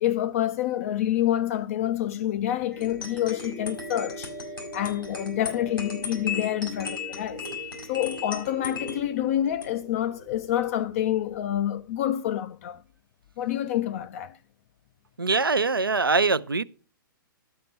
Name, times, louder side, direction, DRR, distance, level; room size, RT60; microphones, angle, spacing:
voice 1, 0.0-4.3 4.7-7.4 7.9-12.8 13.4-14.4, left 12 dB, 40° left, 0.4 m, -27 dB
sound 1, 2.7-11.0, left 3 dB, 80° left, 4.4 m, -37 dB
voice 2, 15.2-16.6, right 4 dB, 85° right, 0.5 m, -23 dB
12.0 x 5.9 x 5.3 m
figure-of-eight pair, 110°, 11 cm